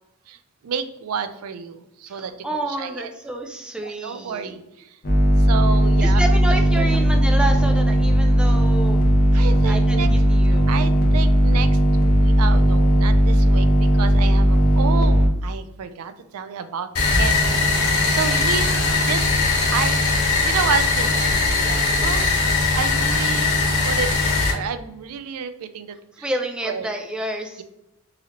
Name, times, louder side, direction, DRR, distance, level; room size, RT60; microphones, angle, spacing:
voice 1, 0.6-3.1 3.8-5.0 5.4-6.2 6.8-7.0 9.3-10.1 10.7-16.9 17.2-18.7 19.1-19.4 19.7-22.3 22.8-23.5 23.8-26.3 26.6-26.9, right 6 dB, 85° right, 10 dB, 0.4 m, -30 dB
voice 2, 2.1-4.6 6.0-9.1 9.6-10.7 26.2-27.6, right 1 dB, 5° right, 2 dB, 0.3 m, -29 dB
sound 1, 5.0-15.3, equal, 45° left, 0.8 m, -17 dB
sound 2, 16.9-24.5, left 3 dB, 90° left, 0.9 m, -20 dB
4.0 x 2.7 x 2.9 m, 0.90 s
head